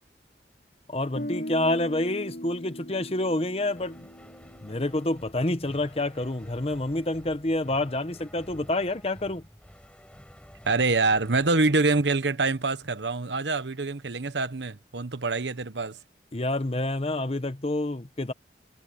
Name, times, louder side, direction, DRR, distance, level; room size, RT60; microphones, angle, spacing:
voice 1, 0.9-4.1 4.6-9.4 16.3-18.3, left 1 dB, 35° left, 1.0 m, -28 dB
Guitar, 1.1-5.1, equal, 60° left, 4.4 m, -38 dB
sound 1, 3.7-13.2, equal, 5° left, 5.2 m, -51 dB
voice 2, 10.6-16.0, right 3 dB, 85° right, 1.2 m, -25 dB
head